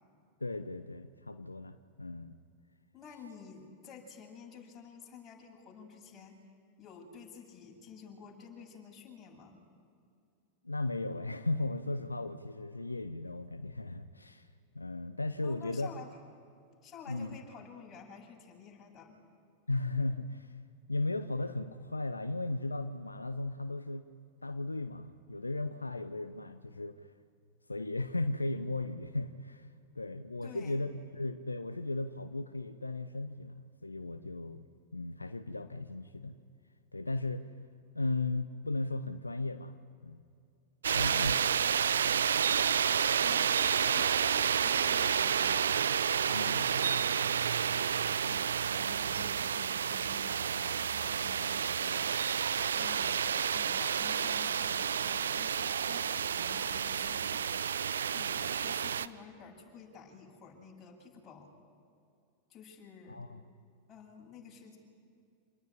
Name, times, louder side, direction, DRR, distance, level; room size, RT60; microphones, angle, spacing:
voice 1, 0.4-2.3 10.6-14.5 14.7-15.9 17.1-17.4 19.7-20.6 20.9-24.1 24.4-27.1 27.7-29.7 29.9-34.7 34.9-36.4 36.9-37.5 37.9-39.8 40.0-40.2 40.9-41.5 42.0-42.2 46.3-46.7 63.1-63.4, left 2 dB, 80° left, 10 dB, 0.8 m, -36 dB
voice 2, 2.9-6.4 6.8-9.6 15.4-16.1 16.8-19.1 30.4-30.8 41.0-41.5 42.8-45.8 46.2-52.1 52.4-57.4 58.1-61.5 62.5-63.2 63.9-64.8, left 6 dB, 25° left, -1 dB, 7.8 m, -51 dB
sound 1, 40.8-59.1, right 7 dB, 65° right, 0.7 m, -30 dB
28.0 x 20.0 x 10.0 m, 2.4 s
figure-of-eight pair, 90°, 0 cm